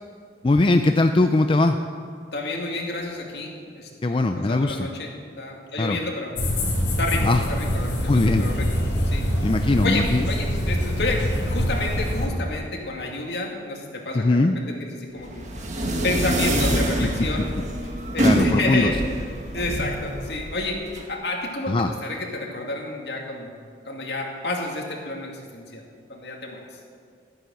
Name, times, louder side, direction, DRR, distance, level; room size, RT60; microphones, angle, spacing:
voice 1, 0.4-1.8 4.0-4.9 5.8-6.0 7.2-7.4 8.1-8.5 9.4-10.3 14.1-14.6 18.2-18.9 21.7-21.9, left 2 dB, 30° left, 6 dB, 0.4 m, -20 dB
voice 2, 2.3-6.3 7.0-8.8 9.1-9.2 9.8-15.5 16.0-17.5 18.1-18.9 19.5-20.8 21.1-23.5 23.9-25.8 26.1-26.6, left 2 dB, 65° left, 0 dB, 2.4 m, -30 dB
sound 1, 6.3-12.3, equal, 90° left, 4.1 m, -24 dB
sound 2, 15.2-21.0, right 1 dB, 40° right, 1.8 m, -25 dB
13.0 x 9.8 x 7.7 m, 2.2 s
head